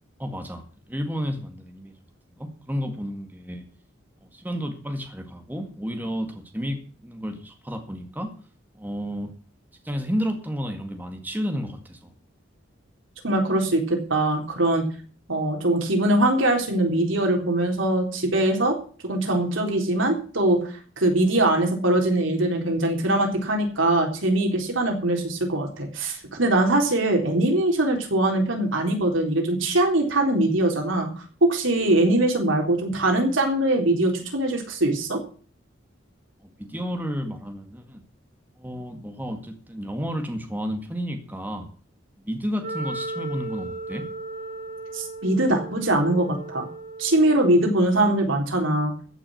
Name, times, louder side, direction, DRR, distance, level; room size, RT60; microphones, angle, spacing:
voice 1, 0.2-1.9 2.4-3.6 4.2-8.3 8.8-9.3 9.8-12.1 36.4-38.0 38.6-41.7 42.3-44.1, equal, 10° right, 5 dB, 1.9 m, -31 dB
voice 2, 13.2-14.9 15.3-18.8 19.0-20.6 21.0-31.1 31.4-35.2 44.9-46.7 47.0-48.9, right 1 dB, 80° right, 2 dB, 3.9 m, -22 dB
Wind instrument woodwind instrument, 42.6-47.7, right 2 dB, 55° right, 6.3 m, -36 dB
15.0 x 6.4 x 9.0 m, 0.42 s
head